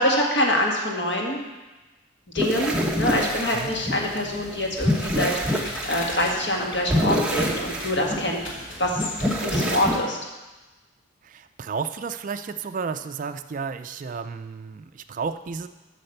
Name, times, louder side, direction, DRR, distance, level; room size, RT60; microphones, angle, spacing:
voice 1, 0.0-1.4 2.3-8.4 8.8-9.0 9.4-10.2, left 1 dB, 55° left, 0 dB, 1.7 m, -25 dB
sound 1, 2.4-10.0, equal, 5° right, 0.9 m, -27 dB
sound 2, 4.5-6.4 7.7-8.0 8.3-9.7, left 1 dB, 75° left, 2.4 m, -39 dB
voice 2, 11.2-15.7, right 5 dB, 40° right, 10 dB, 0.3 m, -32 dB
8.7 x 6.5 x 6.6 m, 1.1 s
head